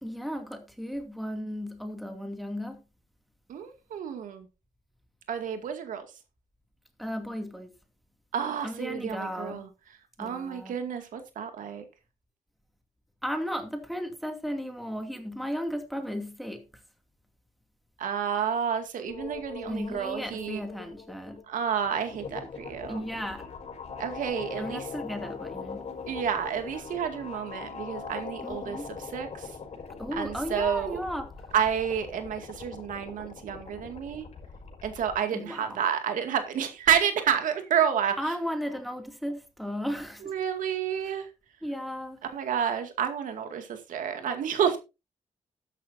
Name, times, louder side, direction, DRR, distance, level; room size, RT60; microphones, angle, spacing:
voice 1, 0.0-2.8 7.0-7.7 8.6-9.6 10.2-10.8 13.2-16.6 19.7-21.4 22.9-23.4 24.6-25.9 28.4-28.9 30.0-31.3 35.3-35.8 38.2-40.3 41.6-42.2, equal, ahead, 2.5 m, -35 dB
voice 2, 3.5-4.5 5.3-6.1 8.3-9.7 10.2-11.8 18.0-20.6 21.5-23.1 24.0-24.9 26.1-29.6 30.1-31.0 31.5-34.2 34.8-38.4 40.2-41.3 42.2-44.8, right 8 dB, 85° right, 2.2 m, -30 dB
sound 1, 19.1-35.2, left 5 dB, 55° left, 5.7 m, -41 dB
13.0 x 11.0 x 2.7 m
cardioid pair, 105°, 13 cm